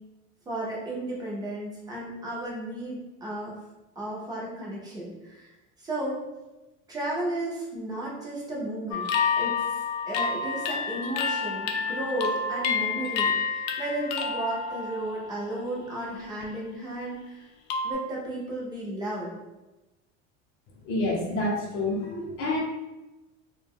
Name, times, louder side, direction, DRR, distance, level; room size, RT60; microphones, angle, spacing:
voice 1, 0.5-3.6 4.0-5.5 5.8-6.3 6.9-9.1 9.4-9.6 10.1-17.4 17.8-19.3, right 1 dB, 15° right, -5 dB, 0.4 m, -34 dB
sound 1, 8.9-15.8 16.2-16.6 17.7-17.9, left 5 dB, 80° left, 0.5 m, -29 dB
voice 2, 20.8-22.6, left 2 dB, 40° left, -1 dB, 0.6 m, -28 dB
2.3 x 2.2 x 3.4 m, 1.1 s
cardioid pair, 170°, 32 cm